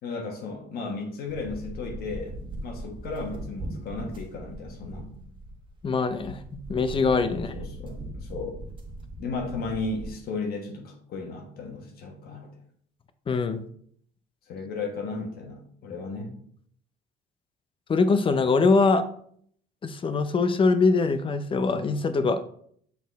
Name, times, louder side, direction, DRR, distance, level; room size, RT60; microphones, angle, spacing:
voice 1, 0.0-5.1 7.3-8.6 9.2-12.5 14.5-16.3, left 3 dB, 65° left, 2 dB, 1.4 m, -35 dB
sound 1, 1.3-10.1, right 1 dB, 30° right, 1.4 m, -39 dB
voice 2, 5.8-6.4 6.7-7.5 13.3-13.7 17.9-19.0 19.8-22.4, left 4 dB, 30° left, 11 dB, 0.6 m, -23 dB
6.4 x 4.2 x 4.1 m, 0.62 s
cardioid pair, 110°, 17 cm